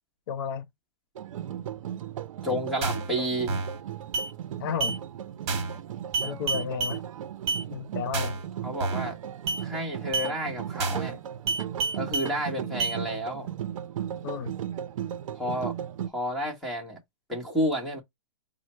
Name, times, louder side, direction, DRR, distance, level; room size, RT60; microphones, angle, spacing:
voice 1, 0.3-0.7 4.6-5.0 6.2-7.1 7.7-8.4 14.2-14.5, left 7 dB, 45° left, 0.6 m, -32 dB
sound 1, 1.2-16.1, right 10 dB, 75° right, 0.5 m, -36 dB
voice 2, 2.4-3.6 6.2-6.4 8.6-9.2 9.6-11.2 11.9-13.5 15.3-15.8 16.1-17.0 17.3-18.0, equal, ahead, 1.0 m, -30 dB
sound 2, 2.8-3.1 3.5-3.8 4.1-4.3 4.8-5.0 5.5-5.8 6.1-7.0 7.5-7.6 8.1-8.4 8.8-9.1 9.5-9.6 10.1-10.3 10.8-11.1 11.5-12.3 12.8-13.0, right 3 dB, 30° right, 1.3 m, -29 dB
4.8 x 2.0 x 4.2 m
hypercardioid pair, 165°, 17 cm